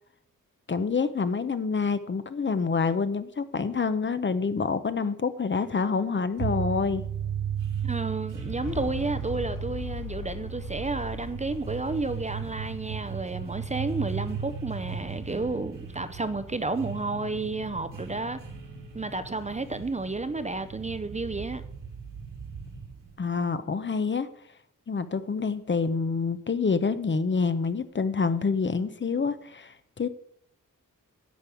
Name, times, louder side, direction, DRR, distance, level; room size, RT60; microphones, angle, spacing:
voice 1, 0.7-7.0 23.2-24.3 24.9-30.1, left 5 dB, 35° left, 0.7 m, -27 dB
sound 1, 6.4-23.2, right 7 dB, 75° right, 2.1 m, -36 dB
voice 2, 7.8-18.4 18.9-21.6, right 3 dB, 20° right, 0.6 m, -31 dB
sound 2, 8.6-13.2, left 6 dB, 85° left, 1.2 m, -40 dB
10.5 x 5.3 x 8.4 m
wide cardioid pair, 130°, 32 cm